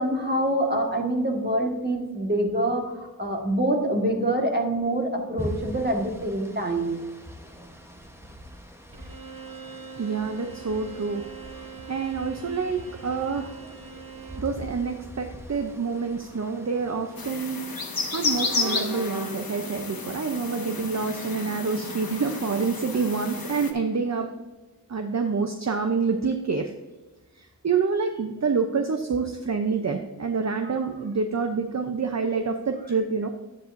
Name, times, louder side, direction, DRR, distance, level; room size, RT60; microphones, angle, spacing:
voice 1, 0.0-7.0 30.6-30.7, right 1 dB, 30° right, 1 dB, 1.6 m, -25 dB
sound 1, 5.4-17.4, left 1 dB, 5° right, 1.0 m, -43 dB
Bowed string instrument, 8.9-14.6, right 6 dB, 70° right, 1.0 m, -43 dB
voice 2, 10.0-13.8 14.4-24.3 24.9-26.7 27.4-33.3, right 5 dB, 50° right, 5 dB, 0.7 m, -27 dB
sound 2, 17.2-23.7, left 3 dB, 80° left, 1.0 m, -32 dB
10.5 x 8.7 x 2.6 m, 1.2 s
wide cardioid pair, 55°, 35 cm